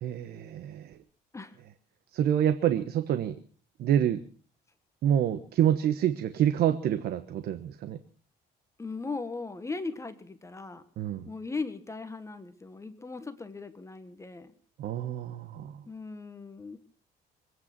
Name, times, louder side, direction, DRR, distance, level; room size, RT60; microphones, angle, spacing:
voice 1, 0.0-1.0 2.1-3.4 3.8-4.2 5.0-8.0 11.0-11.2 14.8-15.8, right 10 dB, 65° right, 10 dB, 1.2 m, -27 dB
voice 2, 8.8-10.8 11.3-14.5 15.9-16.8, left 3 dB, 15° left, 10 dB, 1.5 m, -38 dB
24.5 x 9.6 x 6.0 m, 0.43 s
cardioid pair, 110°, 17 cm